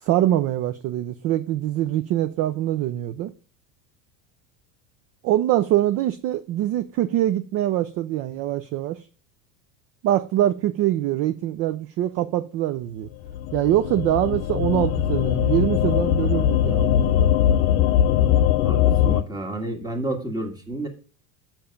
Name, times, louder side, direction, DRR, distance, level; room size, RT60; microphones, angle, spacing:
voice 1, 0.0-3.3 5.2-9.1 10.0-13.1 13.5-17.3, right 13 dB, 40° right, 0.4 m, -24 dB
sound 1, 13.3-19.2, left 10 dB, 70° left, 0.8 m, -20 dB
voice 2, 18.6-20.9, right 1 dB, 10° right, 1.6 m, -30 dB
6.9 x 5.8 x 5.1 m
supercardioid pair, 130°, 40 cm